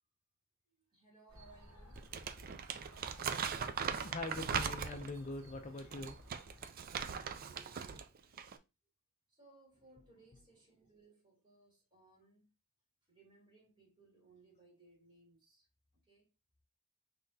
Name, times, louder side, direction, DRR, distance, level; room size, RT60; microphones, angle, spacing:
voice 1, 0.9-2.1 7.0-8.1 9.3-12.5 13.1-15.7 15.9-16.3, right 3 dB, 25° right, 3.1 m, -64 dB
sound 1, 1.3-6.7, equal, 75° right, 1.9 m, -58 dB
Crumpling crinkling, 2.0-5.2 5.8-8.0 8.3-8.6, right 6 dB, 40° right, 0.4 m, -39 dB
voice 2, 4.0-6.2, left 2 dB, 30° left, 0.5 m, -43 dB
5.7 x 3.5 x 2.7 m
head